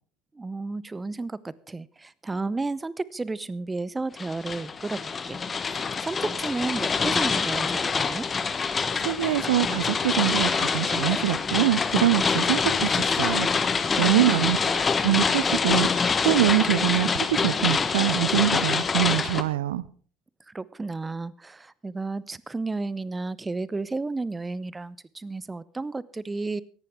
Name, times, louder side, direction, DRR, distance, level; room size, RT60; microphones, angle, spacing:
voice 1, 0.3-5.4 6.0-8.3 13.9-14.5 20.5-26.6, right 3 dB, 15° right, 20 dB, 0.7 m, -32 dB
sound 1, 4.2-19.4, left 5 dB, 25° left, 1.2 m, -25 dB
voice 2, 9.0-19.8, right 13 dB, 75° right, 20 dB, 0.6 m, -25 dB
18.5 x 14.5 x 3.7 m, 0.43 s
hypercardioid pair, 70°, 0 cm